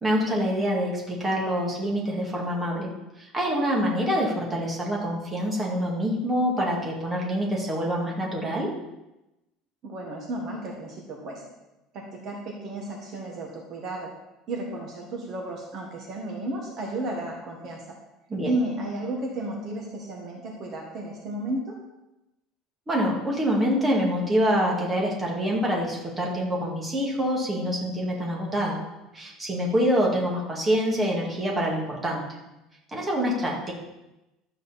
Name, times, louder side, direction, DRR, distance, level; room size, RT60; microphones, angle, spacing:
voice 1, 0.0-2.9 3.2-8.7 18.3-18.5 22.9-28.8 29.1-32.3 32.9-33.7, equal, 10° right, -2 dB, 1.9 m, -26 dB
voice 2, 9.8-11.4 11.9-14.1 14.5-18.0 18.4-21.8, right 1 dB, 35° right, 0 dB, 1.5 m, -33 dB
12.0 x 7.8 x 4.1 m, 0.95 s
cardioid pair, 180°, 0 cm